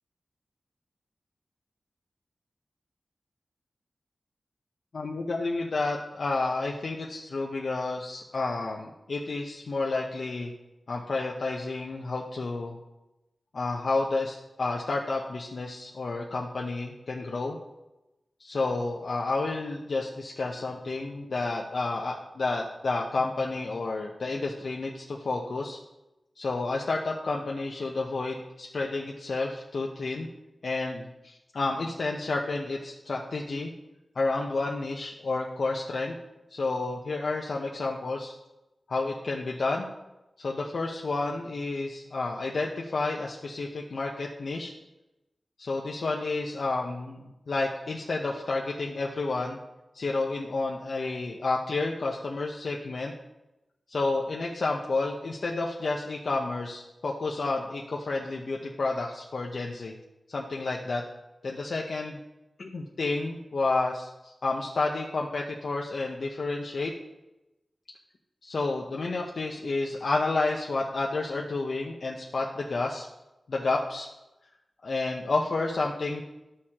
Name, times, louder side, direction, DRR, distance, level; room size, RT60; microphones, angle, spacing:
voice 1, 4.9-10.5 10.9-12.8 13.5-17.6 18.4-25.8 26.4-30.3 30.6-33.7 34.1-36.2 36.5-38.3 38.9-39.9 40.4-44.7 45.6-49.6 49.9-53.1 53.9-59.9 60.3-61.0 61.4-62.2 62.6-66.9 68.4-73.0 73.5-74.1 74.8-76.2, left 3 dB, 65° left, -1 dB, 0.8 m, -30 dB
12.5 x 6.5 x 2.9 m, 0.97 s
wide cardioid pair, 110°, 0 cm